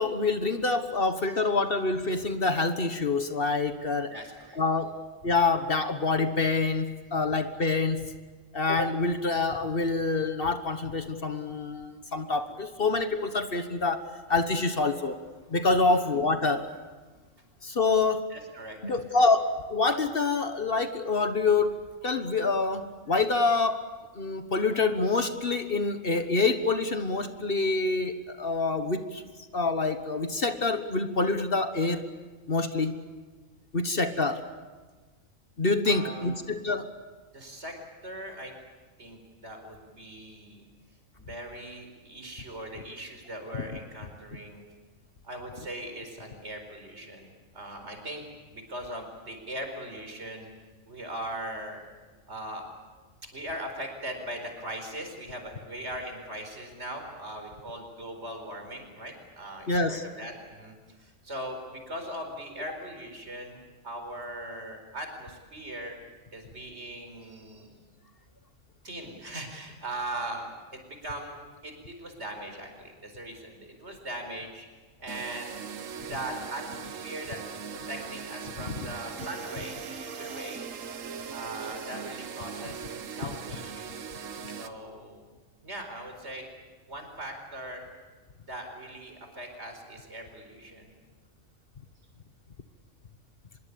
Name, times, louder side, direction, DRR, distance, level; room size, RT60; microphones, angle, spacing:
voice 1, 0.0-4.2 4.5-4.9 5.2-8.1 8.5-15.2 15.5-16.6 17.6-18.2 18.8-23.8 24.1-29.2 29.5-32.0 32.5-33.0 33.7-34.4 35.6-36.9 59.7-60.0 62.7-62.8 78.7-78.9 80.2-80.4, left 3 dB, 45° left, 8 dB, 1.5 m, -26 dB
voice 2, 4.1-4.6 15.8-16.0 18.3-19.2 35.8-36.3 37.3-37.8 38.0-38.5 39.0-40.6 41.2-44.6 45.2-48.2 48.5-50.5 50.9-51.8 52.3-52.6 53.3-66.0 66.3-67.8 68.8-71.4 71.6-74.7 75.0-75.6 76.0-77.4 77.9-80.7 81.3-84.0 84.5-85.3 85.6-86.5 86.9-87.9 88.4-90.9, right 1 dB, 60° right, 5 dB, 4.9 m, -40 dB
sound 1, 75.1-84.7, right 6 dB, 85° right, 1.5 m, -40 dB
25.0 x 22.0 x 8.6 m, 1.3 s
omnidirectional pair, 1.3 m